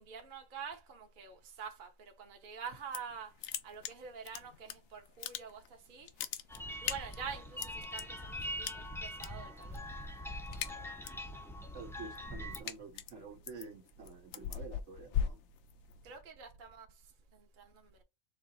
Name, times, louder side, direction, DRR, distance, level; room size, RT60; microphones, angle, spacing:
voice 1, 0.0-3.3 3.6-5.6 5.9-6.1 6.8-9.8 16.0-16.9 17.3-18.0, right 6 dB, 45° right, 1.0 m, -46 dB
sound 1, 2.7-3.2 3.4-4.7 5.1-5.7 6.0-8.0 8.6-9.3 9.6-9.9 10.2-11.3 11.7-16.2, left 9 dB, 65° left, 0.8 m, -39 dB
sound 2, 6.5-12.6, equal, 5° left, 0.5 m, -43 dB
voice 2, 11.7-15.4, right 4 dB, 70° right, 1.4 m, -49 dB
4.6 x 2.9 x 4.0 m
omnidirectional pair, 1.4 m